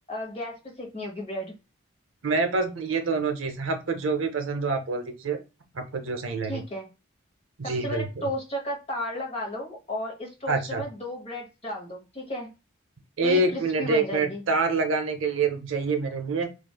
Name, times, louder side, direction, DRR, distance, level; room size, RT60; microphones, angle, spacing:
voice 1, 0.1-1.5 6.5-6.9 7.6-12.5 13.2-14.4, left 1 dB, 30° left, 1 dB, 0.9 m, -34 dB
voice 2, 2.2-5.4 5.7-6.6 7.6-8.3 10.5-10.8 13.2-16.5, right 3 dB, 65° right, 6 dB, 0.6 m, -26 dB
3.1 x 2.4 x 2.2 m, 0.28 s
head